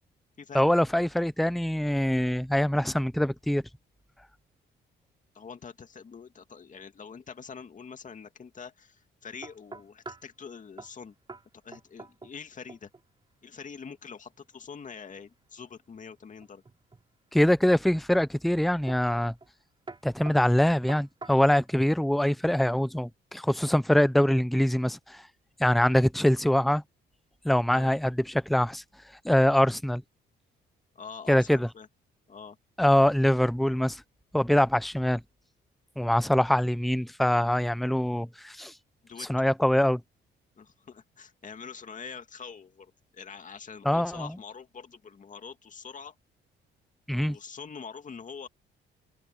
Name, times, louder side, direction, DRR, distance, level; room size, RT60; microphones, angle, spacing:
voice 1, 0.5-3.6 17.3-19.3 20.0-25.2 25.6-26.8 27.4-28.8 29.2-30.0 31.3-31.7 32.8-34.0 34.3-35.2 36.0-38.7 39.3-40.0 43.8-44.3 47.1-47.4, left 1 dB, ahead, 0.8 m, -24 dB
voice 2, 5.3-11.1 11.6-12.9 13.4-16.6 27.7-27.9 31.0-31.9 32.3-32.6 39.0-39.3 40.6-46.2 47.3-48.5, left 6 dB, 40° left, 2.3 m, -44 dB
sound 1, 9.4-10.3 10.8-11.0 11.3-11.5 11.7-12.4 12.7-13.1 16.4-17.1 17.7-18.1 18.9-19.1 19.4-19.6 19.9-21.7, right 3 dB, 25° right, 3.2 m, -45 dB
cardioid pair, 90°, 20 cm